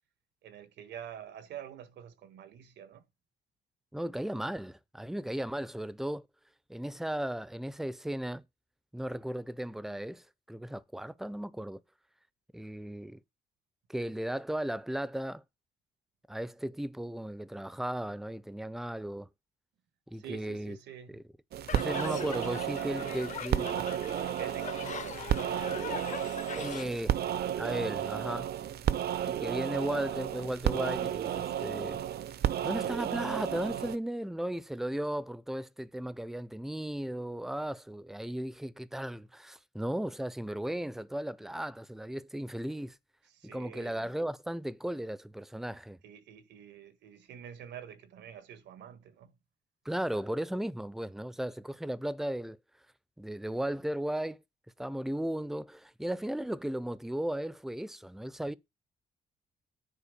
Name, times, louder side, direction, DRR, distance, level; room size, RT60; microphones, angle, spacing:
voice 1, 0.4-3.0 20.2-21.1 22.8-23.6 24.3-26.7 43.3-44.1 46.0-49.3 51.4-51.5, right 9 dB, 85° right, 1.6 m, -48 dB
voice 2, 3.9-6.3 6.7-8.4 8.9-11.8 12.5-13.2 13.9-15.4 16.3-19.3 20.1-20.8 21.1-21.2 21.7-23.9 26.5-27.2 27.6-28.5 29.3-32.0 32.6-43.0 43.5-46.0 49.8-52.6 53.2-54.4 54.8-58.5, right 1 dB, ahead, 0.5 m, -36 dB
sound 1, 21.5-34.0, right 10 dB, 65° right, 0.8 m, -33 dB
sound 2, 21.7-26.9, left 8 dB, 45° left, 0.8 m, -42 dB
10.0 x 4.5 x 6.8 m
cardioid pair, 145°, 18 cm